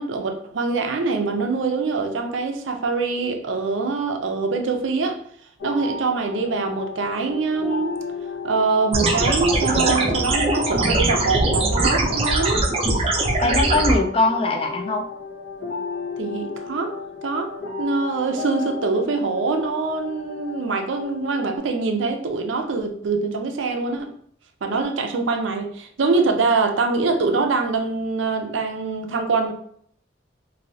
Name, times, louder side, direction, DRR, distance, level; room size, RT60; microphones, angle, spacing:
voice 1, 0.0-5.2 5.6-8.0 8.4-12.7 16.2-24.1 24.6-29.5, right 4 dB, 80° right, 0.5 m, -24 dB
sound 1, 5.6-21.6, left 4 dB, 75° left, 1.0 m, -34 dB
sound 2, 8.9-13.9, right 2 dB, 30° right, 0.5 m, -21 dB
voice 2, 13.4-15.1, left 2 dB, 30° left, 0.3 m, -21 dB
3.1 x 2.6 x 2.6 m
head